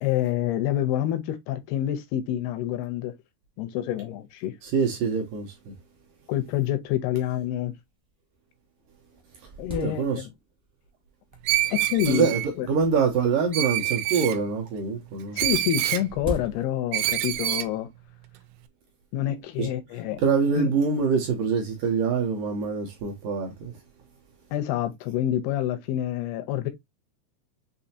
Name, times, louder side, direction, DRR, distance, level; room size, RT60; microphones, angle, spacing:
voice 1, 0.0-3.1 3.6-4.5 6.3-7.7 9.6-10.3 11.7-12.3 12.6-12.7 15.3-17.9 19.1-20.2 20.5-20.7 24.5-26.7, left 12 dB, 85° left, 2.6 m, -27 dB
voice 2, 4.6-5.7 9.4-9.5 9.8-10.3 11.6-11.7 12.1-15.4 19.6-19.7 20.2-23.7, right 5 dB, 75° right, 2.0 m, -25 dB
sound 1, 6.8-6.9 7.6-7.7 8.3-8.4 8.8-10.6 11.3-11.8 12.7-14.0 15.3-17.1, right 2 dB, 15° right, 0.6 m, -40 dB
Screech, 11.5-12.5 13.5-14.4 15.4-16.1 16.9-17.7, right 15 dB, 90° right, 2.7 m, -26 dB
6.5 x 2.7 x 2.7 m
omnidirectional pair, 4.7 m